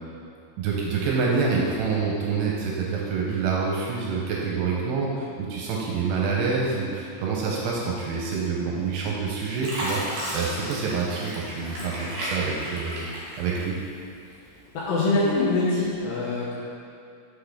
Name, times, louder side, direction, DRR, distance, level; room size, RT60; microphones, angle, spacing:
voice 1, 0.6-13.8, right 4 dB, 80° right, -3 dB, 2.5 m, -27 dB
Fill (with liquid), 8.9-9.2 9.6-14.0 14.4-15.3 15.8-16.0, right 1 dB, 60° right, 2.1 m, -33 dB
voice 2, 14.7-16.5, left 2 dB, 80° left, -8 dB, 2.0 m, -24 dB
5.9 x 5.8 x 3.4 m, 2.5 s
omnidirectional pair, 5.1 m